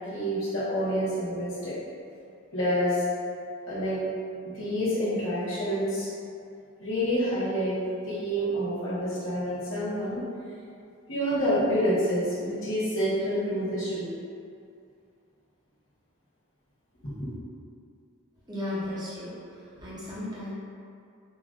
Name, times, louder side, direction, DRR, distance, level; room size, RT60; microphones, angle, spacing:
voice 1, 0.1-1.8 2.5-3.0 3.7-4.0 4.4-6.1 6.8-7.8 8.0-10.2 11.1-14.1 17.2-17.3, equal, 65° left, -10 dB, 1.2 m, -28 dB
voice 2, 18.5-20.5, left 1 dB, 20° right, -9 dB, 0.8 m, -35 dB
4.7 x 2.5 x 2.5 m, 2.4 s
head